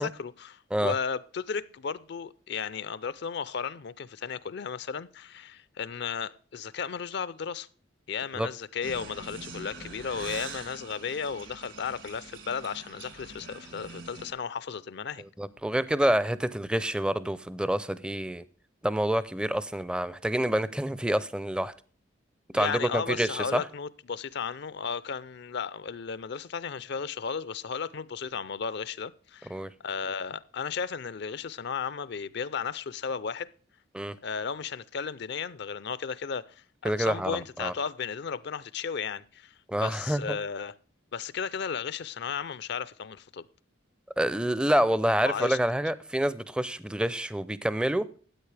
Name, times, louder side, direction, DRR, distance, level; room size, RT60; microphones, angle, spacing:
voice 1, 0.0-7.7 8.1-15.3 22.5-33.5 34.2-40.8 41.1-43.5 45.2-45.6, left 6 dB, 60° left, 0.5 m, -34 dB
sound 1, 8.8-14.3, right 4 dB, 70° right, 2.3 m, -44 dB
voice 2, 15.4-18.4 18.8-21.7 22.5-23.6 29.5-29.7 33.9-34.2 36.8-37.7 39.7-40.4 44.2-48.1, right 1 dB, 5° right, 0.5 m, -27 dB
13.5 x 8.8 x 3.3 m
head